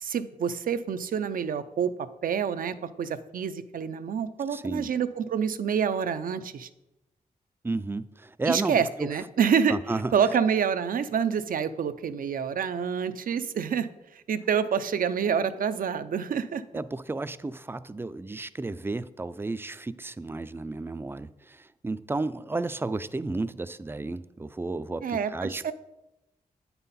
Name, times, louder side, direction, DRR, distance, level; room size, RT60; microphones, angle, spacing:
voice 1, 0.0-1.9 2.2-6.7 8.5-9.8 10.1-16.6 25.0-25.7, right 7 dB, 70° right, 11 dB, 0.5 m, -27 dB
voice 2, 4.5-4.9 7.6-9.1 9.7-10.1 16.7-25.7, right 3 dB, 15° right, 14 dB, 0.4 m, -32 dB
8.8 x 5.6 x 4.2 m, 0.94 s
cardioid pair, 70°, 15 cm